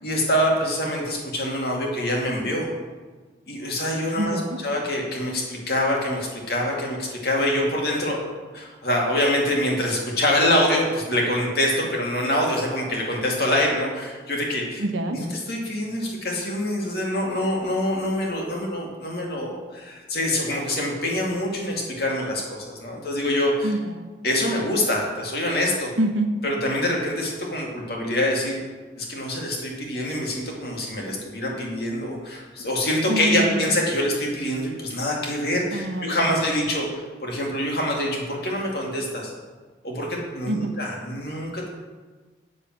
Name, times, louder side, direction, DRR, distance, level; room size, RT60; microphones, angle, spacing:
voice 1, 0.0-2.7 3.5-8.2 8.5-14.8 15.1-23.8 24.2-25.9 26.4-28.6 29.0-36.9 37.2-39.3 39.8-41.7, left 1 dB, 55° left, -1 dB, 2.3 m, -25 dB
voice 2, 4.2-4.6 14.8-15.2 23.6-24.1 26.0-26.3 33.1-33.6 35.7-36.3 40.4-40.7, right 1 dB, 85° right, 6 dB, 1.1 m, -26 dB
8.3 x 7.0 x 7.4 m, 1.4 s
head